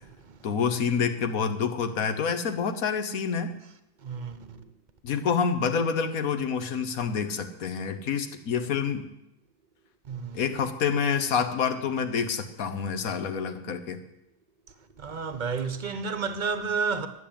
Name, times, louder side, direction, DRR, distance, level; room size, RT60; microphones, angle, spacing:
voice 1, 0.4-3.5 5.0-9.1 10.3-14.0, left 6 dB, 85° left, 1.5 m, -27 dB
voice 2, 4.0-4.6 10.1-10.4 15.0-17.1, right 5 dB, 40° right, 0.9 m, -31 dB
12.0 x 7.3 x 8.7 m
omnidirectional pair, 1.4 m